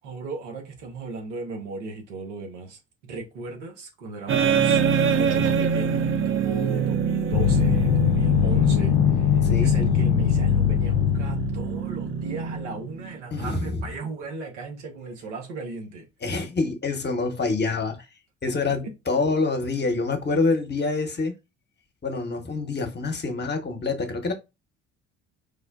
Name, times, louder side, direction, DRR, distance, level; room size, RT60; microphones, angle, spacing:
voice 1, 0.0-2.8 3.1-16.1, right 3 dB, 80° right, 0.9 m, -36 dB
sound 1, 4.3-13.2, right 6 dB, 35° right, 0.4 m, -25 dB
sound 2, 7.3-11.9, left 10 dB, 70° left, 0.5 m, -21 dB
voice 2, 9.4-9.7 13.3-13.9 16.2-18.0 18.4-21.3 22.0-24.3, left 3 dB, 30° left, 1.0 m, -26 dB
4.9 x 2.1 x 2.3 m
hypercardioid pair, 55°, 35 cm